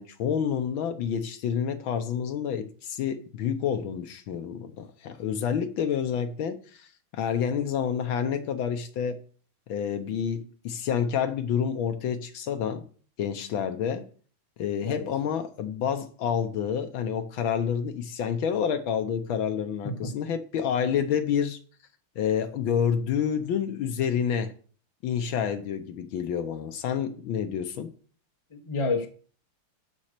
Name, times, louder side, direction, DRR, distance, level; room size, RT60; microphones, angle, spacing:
voice 1, 0.0-6.9 7.1-9.2 9.7-12.8 13.2-14.1 14.6-21.6 22.2-24.5 25.0-27.9, left 8 dB, 70° left, 1.5 m, -28 dB
voice 2, 28.5-29.1, left 3 dB, 30° left, 0.5 m, -29 dB
7.4 x 6.2 x 6.6 m
omnidirectional pair, 2.4 m